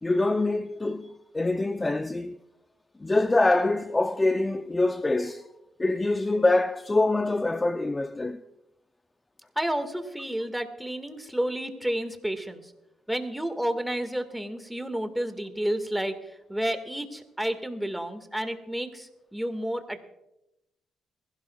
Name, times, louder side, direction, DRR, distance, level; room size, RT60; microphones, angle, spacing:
voice 1, 0.0-2.4 3.0-5.5 5.8-8.4, left 2 dB, 20° left, 0.5 m, -25 dB
voice 2, 9.6-12.7 13.1-20.0, right 1 dB, 5° right, 1.8 m, -31 dB
22.0 x 16.0 x 2.4 m
cardioid pair, 90°, 0 cm